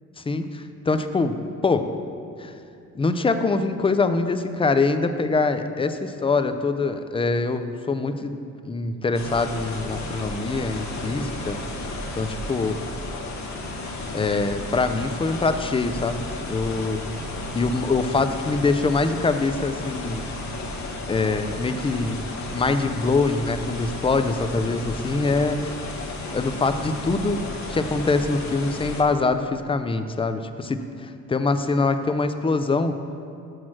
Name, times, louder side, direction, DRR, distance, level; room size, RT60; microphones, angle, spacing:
voice 1, 0.2-1.9 2.4-2.5 2.9-8.3 8.6-11.6 12.2-12.8 14.1-17.1 17.5-20.4 21.1-22.2 22.5-25.9 26.3-27.4 27.7-33.0, left 3 dB, 20° left, 9 dB, 0.4 m, -24 dB
sound 1, 9.1-29.0, left 2 dB, 65° left, 1.2 m, -33 dB
6.4 x 6.0 x 6.1 m, 2.5 s
cardioid pair, 90°, 30 cm